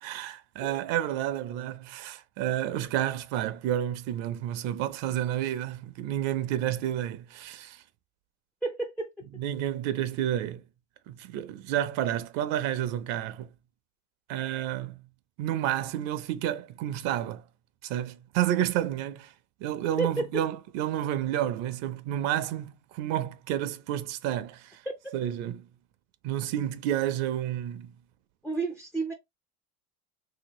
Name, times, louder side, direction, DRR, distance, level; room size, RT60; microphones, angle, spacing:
voice 1, 0.0-7.8 9.4-10.6 11.1-13.5 14.3-15.0 15.4-17.4 17.8-19.3 19.6-24.8 25.1-25.7 26.2-27.9, right 11 dB, 60° right, 0.6 m, -30 dB
voice 2, 8.6-9.1 20.0-20.2 28.4-29.1, right 3 dB, 5° left, 0.4 m, -30 dB
3.3 x 2.8 x 3.0 m
cardioid pair, 150°, 30 cm